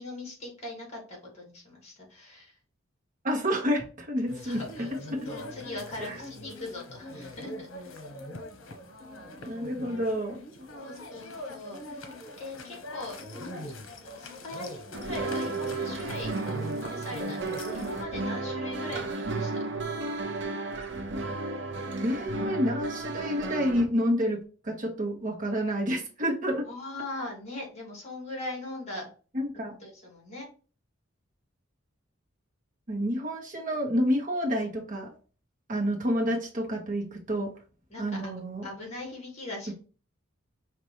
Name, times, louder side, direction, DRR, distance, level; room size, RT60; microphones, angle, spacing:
voice 1, 0.0-2.6 4.4-8.0 10.7-13.7 14.0-17.5 17.7-19.6 26.6-29.1 29.8-30.5 37.9-39.7, left 2 dB, 35° left, -1 dB, 2.3 m, -41 dB
voice 2, 3.2-4.6 5.1-5.2 6.0-6.2 9.4-10.4 22.0-24.4 24.6-26.6 29.3-29.7 32.9-35.1 35.7-37.5 38.0-38.7, equal, 40° right, 0 dB, 1.4 m, -29 dB
sound 1, 4.3-18.0, left 1 dB, 80° left, 0.9 m, -42 dB
sound 2, 14.9-23.9, right 3 dB, 60° right, 0.8 m, -33 dB
5.7 x 2.9 x 3.1 m, 0.37 s
head